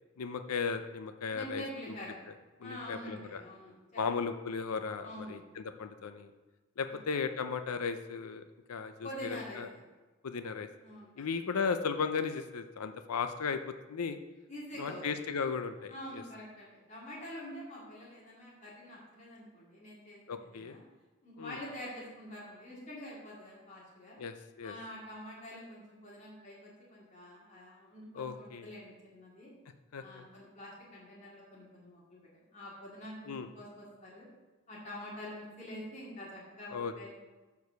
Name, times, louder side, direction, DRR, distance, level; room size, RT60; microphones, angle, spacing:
voice 1, 0.2-1.6 2.6-3.4 4.0-6.3 6.8-9.7 10.2-10.7 11.2-13.6 13.9-14.2 14.8-15.9 20.3-20.8 21.4-21.6 24.2-24.7 28.2-28.7 29.9-30.2 33.3-33.5 36.7-37.1, left 5 dB, 90° left, 9 dB, 0.5 m, -36 dB
voice 2, 1.3-2.1 2.6-4.0 5.0-5.4 6.9-7.0 9.0-9.8 10.8-11.1 14.5-15.2 15.9-20.8 21.2-24.2 24.6-29.5 30.0-34.3 34.7-37.1, equal, 30° left, -6 dB, 2.3 m, -46 dB
9.4 x 4.7 x 6.8 m, 1.2 s
head